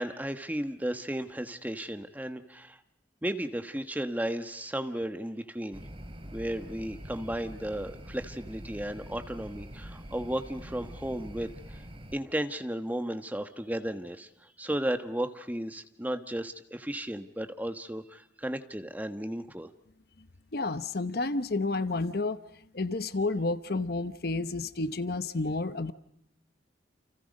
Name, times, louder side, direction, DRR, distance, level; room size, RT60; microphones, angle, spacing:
voice 1, 0.0-2.8 3.2-5.8 6.3-11.8 12.1-14.3 14.6-19.7, right 1 dB, 10° right, 8 dB, 1.2 m, -34 dB
sound 1, 5.7-12.2, equal, 30° right, 3.1 m, -45 dB
voice 2, 20.5-22.4 22.7-25.9, left 3 dB, 55° left, 12 dB, 1.0 m, -30 dB
29.5 x 28.5 x 5.4 m, 0.74 s
head